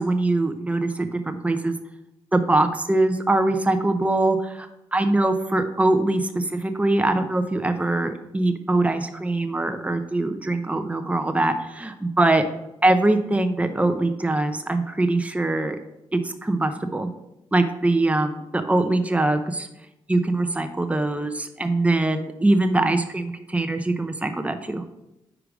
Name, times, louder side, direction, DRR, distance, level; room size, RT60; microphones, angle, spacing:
voice 1, 0.0-1.7 2.3-4.7 4.9-12.4 12.8-15.8 16.1-17.1 17.5-19.7 20.1-24.8, right 2 dB, 15° right, 7 dB, 0.7 m, -22 dB
4.9 x 4.8 x 5.0 m, 0.92 s
supercardioid pair, 50°, 11 cm